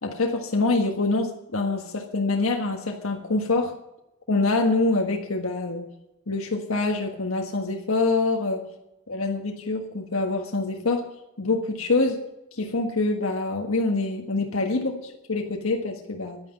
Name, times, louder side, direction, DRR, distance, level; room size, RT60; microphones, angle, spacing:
voice 1, 0.0-3.7 4.3-5.8 6.3-8.6 9.1-11.1 11.4-12.2 12.6-16.4, left 3 dB, 75° left, 2 dB, 1.6 m, -25 dB
11.5 x 9.7 x 9.4 m, 0.89 s
head